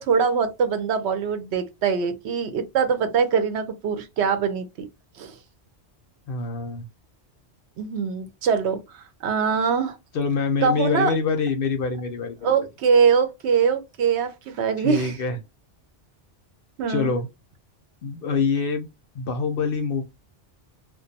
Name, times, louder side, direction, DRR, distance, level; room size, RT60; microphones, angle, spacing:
voice 1, 0.0-4.7 5.2-5.3 7.8-10.0 10.6-11.1 12.4-15.1 16.8-17.1, right 6 dB, 70° right, 0.8 m, -23 dB
voice 2, 6.3-6.9 10.1-12.7 14.8-15.4 16.9-17.3 18.0-18.9 19.1-20.0, left 4 dB, 60° left, 0.6 m, -25 dB
2.3 x 2.2 x 2.6 m
omnidirectional pair, 1.2 m